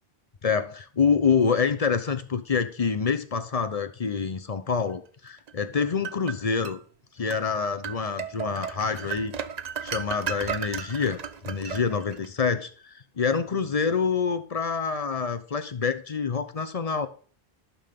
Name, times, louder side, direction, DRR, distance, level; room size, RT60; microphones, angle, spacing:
voice 1, 0.4-6.8 7.2-9.3 9.8-17.1, left 5 dB, 40° left, 0.7 m, -26 dB
sound 1, 5.5-6.8 7.3-7.5 7.8-12.3, right 7 dB, 50° right, 0.6 m, -35 dB
11.0 x 3.9 x 5.3 m
omnidirectional pair, 1.1 m